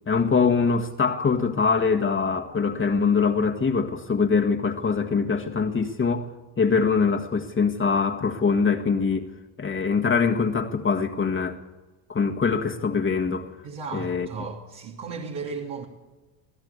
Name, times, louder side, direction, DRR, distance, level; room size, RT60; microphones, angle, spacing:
voice 1, 0.1-6.3 6.6-9.3 9.6-11.6 12.1-13.5 13.9-14.3, left 5 dB, 25° left, 1.7 m, -23 dB
voice 2, 13.6-15.9, right 4 dB, 60° right, 3.1 m, -35 dB
24.0 x 15.0 x 8.2 m
supercardioid pair, 85°, 47 cm